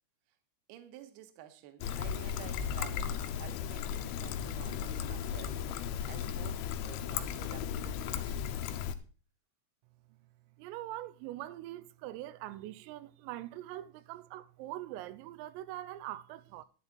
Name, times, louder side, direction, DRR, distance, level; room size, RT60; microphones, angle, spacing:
voice 1, 0.7-8.8, right 10 dB, 70° right, 2.8 m, -52 dB
Trickle dribble, 1.8-9.0, left 8 dB, 80° left, 3.3 m, -36 dB
voice 2, 10.6-16.7, right 14 dB, 90° right, 3.4 m, -43 dB
11.0 x 10.5 x 4.2 m
omnidirectional pair, 5.8 m